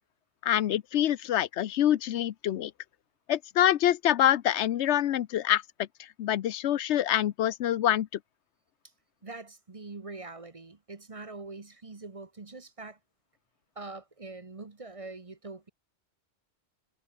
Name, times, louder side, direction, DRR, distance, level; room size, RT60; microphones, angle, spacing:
voice 1, 0.4-2.7 3.3-5.6 6.2-8.1, left 11 dB, 85° left, 1.0 m, -25 dB
voice 2, 9.2-13.0 13.7-15.7, right 3 dB, 30° right, 1.2 m, -43 dB
omnidirectional pair, 1.1 m